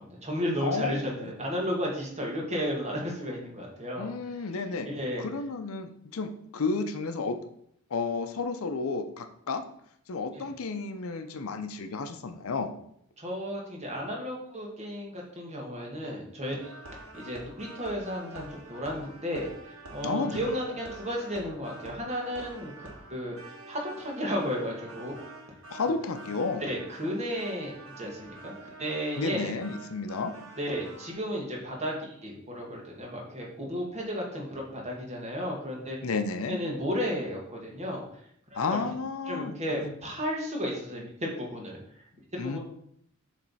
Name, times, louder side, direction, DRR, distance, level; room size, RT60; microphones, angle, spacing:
voice 1, 0.0-4.1 4.8-5.2 10.3-10.5 13.2-16.7 17.1-19.5 19.9-23.4 23.7-25.3 26.6-29.5 30.6-36.0 36.5-38.0 38.7-38.8 39.3-41.8 42.4-42.6, equal, 30° right, -1 dB, 1.6 m, -33 dB
voice 2, 0.6-1.3 4.0-4.9 5.2-7.4 7.9-9.6 10.1-12.7 20.0-20.5 25.7-26.6 29.2-30.3 36.0-36.6 38.5-39.9 42.4-42.6, left 4 dB, 70° left, 8 dB, 0.6 m, -32 dB
sound 1, 16.6-31.1, right 2 dB, 80° right, 1.6 m, -47 dB
7.5 x 3.3 x 4.1 m, 0.69 s
head